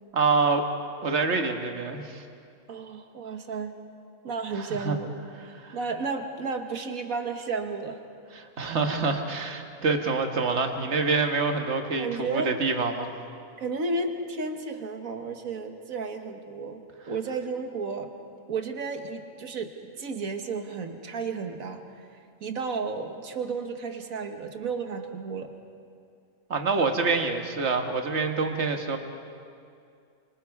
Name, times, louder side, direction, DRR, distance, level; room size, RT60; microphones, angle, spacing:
voice 1, 0.1-0.6 1.0-2.2 4.5-5.0 5.6-5.8 8.3-13.1 26.5-29.0, right 4 dB, 50° right, 4 dB, 1.7 m, -26 dB
voice 2, 2.7-3.7 4.2-5.2 5.4-8.0 12.0-12.5 13.6-18.1 18.5-19.7 20.0-22.1 22.4-25.5, right 4 dB, 70° right, 6 dB, 1.7 m, -33 dB
26.0 x 25.0 x 4.7 m, 2.4 s
omnidirectional pair, 1.5 m